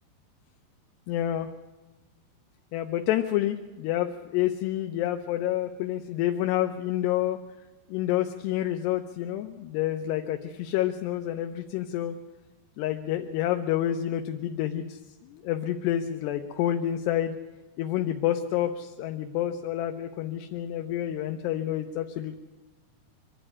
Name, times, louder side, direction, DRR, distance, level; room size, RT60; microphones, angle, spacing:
voice 1, 1.1-1.5 2.7-7.4 7.9-12.2 12.8-15.0 15.3-17.3 17.8-22.4, left 12 dB, 75° left, 6 dB, 2.8 m, -28 dB
24.5 x 11.5 x 9.9 m, 1.2 s
omnidirectional pair, 5.1 m